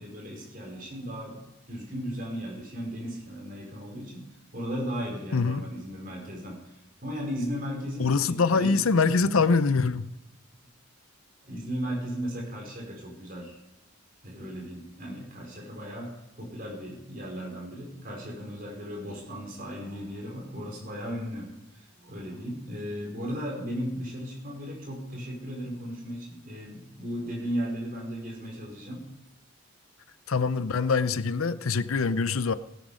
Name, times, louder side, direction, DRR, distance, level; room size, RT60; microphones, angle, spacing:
voice 1, 0.0-1.4 1.7-6.7 7.0-8.9 9.2-9.5 11.4-13.6 14.2-21.5 21.7-29.0, equal, 40° right, -1 dB, 5.2 m, -36 dB
voice 2, 5.3-5.7 8.0-10.1 30.3-32.5, left 4 dB, 85° left, 15 dB, 0.7 m, -24 dB
17.5 x 10.5 x 5.1 m, 0.92 s
head